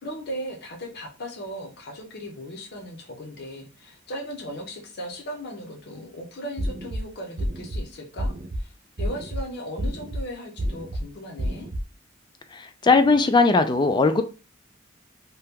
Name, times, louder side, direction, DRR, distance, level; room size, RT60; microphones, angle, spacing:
voice 1, 0.0-8.7 9.0-11.7, equal, 55° left, 0.7 m, -37 dB
sound 1, 6.6-7.0 7.4-7.8 8.2-8.6 9.0-9.4 9.8-10.2 10.6-11.0 11.4-11.8, equal, 50° right, 0.5 m, -29 dB
voice 2, 12.5-14.2, left 3 dB, 25° left, 0.3 m, -19 dB
2.8 x 2.2 x 3.5 m
head